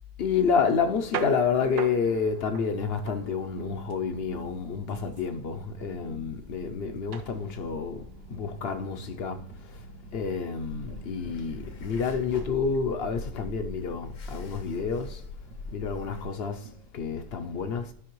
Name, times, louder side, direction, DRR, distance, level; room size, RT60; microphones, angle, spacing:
voice 1, 0.2-9.9 10.1-15.2 15.7-17.9, left 5 dB, 60° left, 0.7 m, -29 dB
sound 1, 0.7-16.9, right 7 dB, 65° right, 0.9 m, -44 dB
sound 2, 10.6-16.2, left 3 dB, 85° left, 1.5 m, -42 dB
12.0 x 5.5 x 3.0 m
omnidirectional pair, 1.5 m